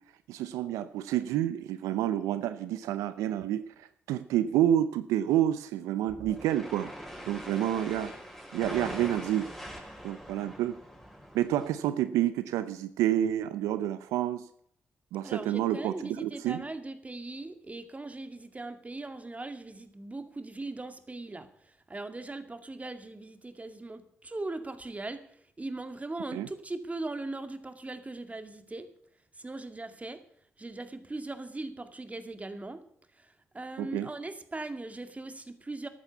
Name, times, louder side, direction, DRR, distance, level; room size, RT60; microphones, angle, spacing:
voice 1, 0.3-6.9 7.3-8.1 8.5-9.5 10.0-10.8 11.3-14.5 15.1-16.6 26.3-26.5 33.8-34.1, right 12 dB, 80° right, 13 dB, 0.6 m, -29 dB
sound 1, 6.1-11.7, equal, 5° left, 5.4 m, -43 dB
voice 2, 15.2-25.2 25.6-28.9 29.4-30.2 30.6-32.8 33.2-35.9, right 2 dB, 25° right, 9 dB, 2.2 m, -39 dB
13.0 x 9.2 x 8.1 m, 0.66 s
hypercardioid pair, 40°, 5 cm